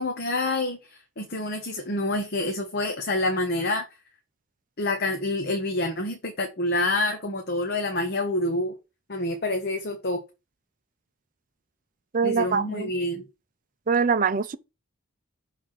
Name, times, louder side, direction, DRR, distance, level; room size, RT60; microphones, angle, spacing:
voice 1, 0.0-3.8 4.8-8.7 9.1-10.2 12.2-13.3, left 2 dB, 50° left, 1.0 m, -27 dB
voice 2, 12.1-12.9 13.9-14.6, right 5 dB, 40° right, 0.5 m, -23 dB
6.2 x 3.5 x 5.8 m
head